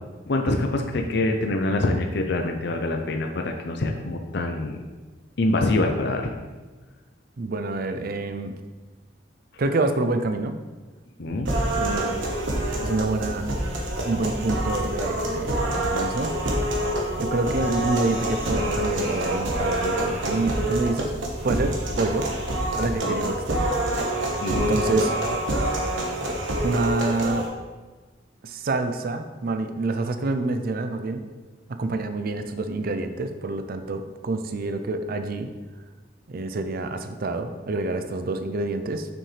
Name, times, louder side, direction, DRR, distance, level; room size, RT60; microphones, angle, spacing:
voice 1, 0.3-4.8 5.4-6.3 11.2-11.5 23.0-23.2 24.4-24.8, left 2 dB, 60° left, 3 dB, 0.6 m, -25 dB
voice 2, 7.4-8.5 9.6-10.5 11.7-12.1 12.8-13.5 14.0-16.3 17.2-21.1 21.4-22.3 22.8-23.6 24.5-25.1 26.6-27.5 28.4-31.2 31.7-35.5 36.3-39.1, right 2 dB, 50° right, 8 dB, 0.5 m, -27 dB
sound 1, 11.3-24.7, equal, 85° left, 1.4 m, -39 dB
sound 2, 11.5-27.5, right 1 dB, 85° right, 1.3 m, -26 dB
7.0 x 6.1 x 3.3 m, 1.3 s
head